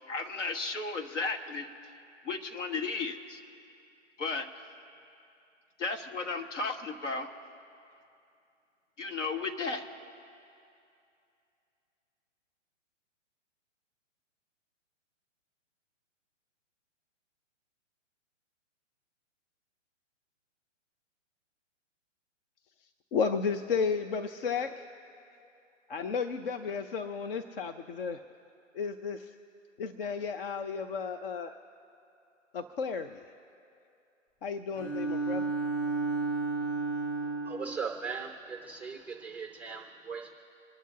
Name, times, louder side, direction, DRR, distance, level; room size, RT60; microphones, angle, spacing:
voice 1, 0.1-1.7 2.2-3.4 4.2-4.5 5.8-7.3 9.0-9.8, left 3 dB, 70° left, 4 dB, 1.8 m, -34 dB
voice 2, 23.1-24.9 25.9-28.2 28.7-29.4 29.8-31.6 32.5-33.2 34.4-35.5, left 5 dB, 45° left, 8 dB, 0.8 m, -33 dB
Bowed string instrument, 34.7-37.8, right 3 dB, 30° left, 3.2 m, -32 dB
voice 3, 37.2-40.4, right 5 dB, 5° right, 2 dB, 0.5 m, -39 dB
27.0 x 11.5 x 2.8 m, 2.6 s
hypercardioid pair, 130°, 38 cm